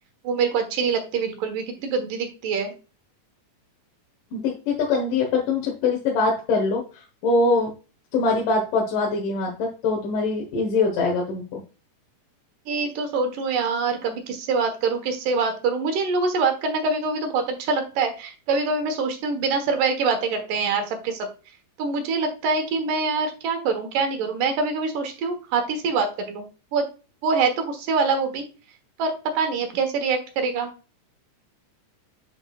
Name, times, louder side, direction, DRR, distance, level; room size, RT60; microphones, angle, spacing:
voice 1, 0.2-2.7 12.7-21.3 21.8-26.5 26.7-26.9 27.2-28.4 29.0-30.7, right 4 dB, 90° right, 5 dB, 2.9 m, -24 dB
voice 2, 4.3-7.7 8.1-11.6, left 3 dB, 90° left, -1 dB, 3.0 m, -23 dB
9.7 x 4.6 x 2.3 m, 0.33 s
omnidirectional pair, 3.6 m